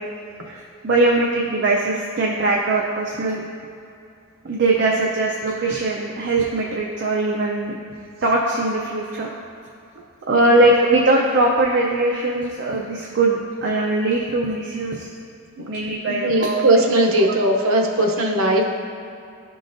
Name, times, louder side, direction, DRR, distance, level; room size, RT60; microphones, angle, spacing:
voice 1, 0.8-3.4 4.4-7.8 8.2-9.3 10.3-15.1 15.7-16.6 17.2-17.3, right 2 dB, 55° right, -2 dB, 0.5 m, -20 dB
voice 2, 16.1-18.6, right 1 dB, 85° right, 1 dB, 0.7 m, -18 dB
11.5 x 3.8 x 2.6 m, 2.5 s
head